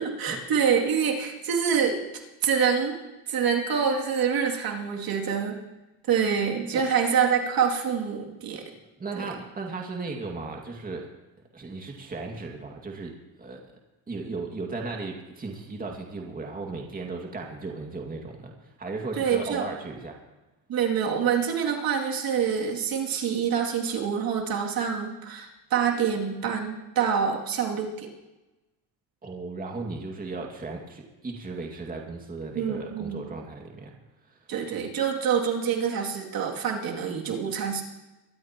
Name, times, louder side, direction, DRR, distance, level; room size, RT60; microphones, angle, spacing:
voice 1, 0.0-2.0 2.4-3.0 3.3-5.6 6.1-8.6 9.2-9.3 19.1-19.6 20.7-28.1 32.6-33.2 34.5-37.8, right 7 dB, 50° right, 0 dB, 2.7 m, -26 dB
voice 2, 9.0-11.1 11.5-13.1 13.4-13.6 14.1-20.2 29.2-33.9 34.3-34.4, right 3 dB, 20° right, 1 dB, 2.1 m, -36 dB
23.5 x 12.5 x 3.0 m, 1.1 s
supercardioid pair, 100°, 44 cm